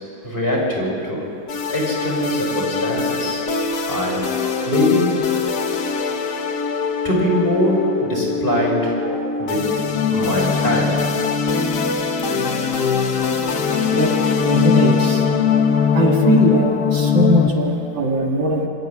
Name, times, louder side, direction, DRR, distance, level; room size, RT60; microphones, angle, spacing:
voice 1, 0.2-1.3 1.7-3.4 3.9-4.2 4.7-5.1 7.0-9.7 10.1-11.0, equal, 25° left, -3 dB, 5.8 m, -22 dB
sound 1, 1.5-17.5, left 6 dB, 60° left, 1.8 m, -21 dB
voice 2, 14.5-15.2 15.9-18.7, right 1 dB, 70° right, 0 dB, 2.8 m, -20 dB
25.0 x 13.5 x 9.8 m, 2.8 s
omnidirectional pair, 2.2 m